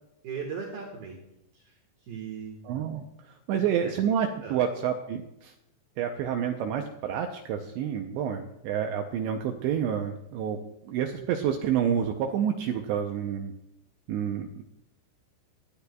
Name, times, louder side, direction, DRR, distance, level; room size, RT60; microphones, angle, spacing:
voice 1, 0.2-1.2 1.5-1.7 2.0-2.6 3.5-3.9 4.4-4.6, right 6 dB, 65° right, 1 dB, 2.7 m, -38 dB
voice 2, 2.6-3.0 3.5-5.5 6.0-10.6 10.9-13.5 14.1-14.6, right 8 dB, 85° right, 4 dB, 2.5 m, -28 dB
19.0 x 11.5 x 2.3 m, 0.87 s
omnidirectional pair, 5.9 m